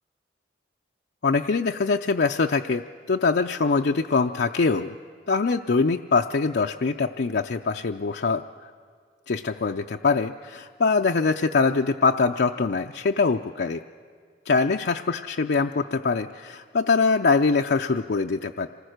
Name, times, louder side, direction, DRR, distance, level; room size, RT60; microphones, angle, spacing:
voice 1, 1.2-4.9 5.3-8.7 9.3-13.8 14.5-18.7, left 4 dB, 60° left, 3 dB, 0.5 m, -23 dB
26.5 x 19.5 x 6.5 m, 2.1 s
head